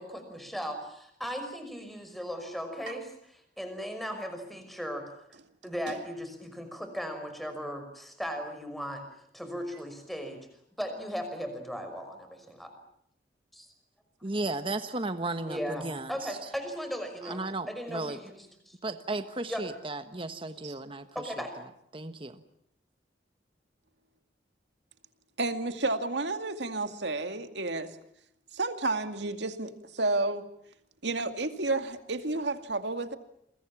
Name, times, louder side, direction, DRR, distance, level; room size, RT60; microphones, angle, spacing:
voice 1, 0.0-3.1 3.6-5.1 5.6-9.0 9.3-10.5 10.8-12.7 13.5-13.7 15.5-18.8 19.5-19.6 21.1-21.5, equal, ahead, 7 dB, 5.6 m, -37 dB
voice 2, 14.2-16.5 17.2-18.2 18.8-22.4, right 2 dB, 30° right, 9 dB, 1.3 m, -35 dB
voice 3, 25.4-27.9 28.5-30.5 31.0-33.2, right 2 dB, 75° right, 8 dB, 2.3 m, -31 dB
29.0 x 23.0 x 7.3 m, 0.72 s
head